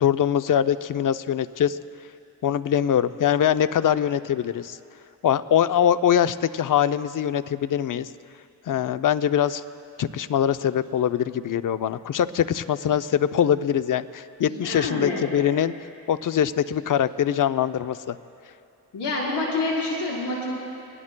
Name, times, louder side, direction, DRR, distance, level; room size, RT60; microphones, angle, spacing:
voice 1, 0.0-1.8 2.4-4.8 5.2-8.1 8.7-9.6 10.0-15.7 16.1-18.2, left 9 dB, 50° left, 13 dB, 0.5 m, -23 dB
voice 2, 14.4-15.3 18.9-20.5, left 2 dB, 85° left, -4 dB, 4.2 m, -27 dB
23.0 x 18.5 x 2.2 m, 2.6 s
cardioid pair, 75°, 41 cm